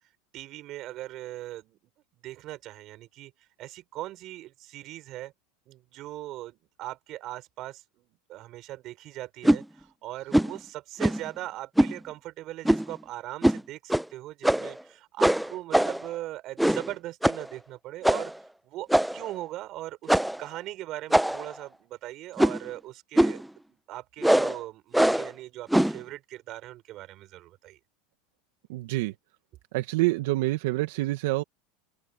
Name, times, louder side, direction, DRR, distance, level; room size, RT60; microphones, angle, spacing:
voice 1, 0.3-1.8 2.1-3.3 3.6-5.3 5.7-18.3 18.6-23.4 23.7-27.8, right 16 dB, 50° right, 5.6 m, -40 dB
sound 1, 9.4-9.6 10.3-10.6 11.0-11.3 11.8-12.0 12.6-12.9 13.4-13.6 13.9-14.0 14.4-14.8 15.2-16.1 16.6-16.9 17.2-17.5 18.0-18.4 18.9-19.3 20.1-20.4 21.1-21.5 22.4-22.7 23.2-23.4 24.2-24.6 24.9-25.3 25.7-26.0, right 1 dB, 5° right, 0.6 m, -22 dB
voice 2, 28.7-29.1 29.7-31.4, right 19 dB, 75° right, 1.3 m, -27 dB
open air
supercardioid pair, 110°, 0 cm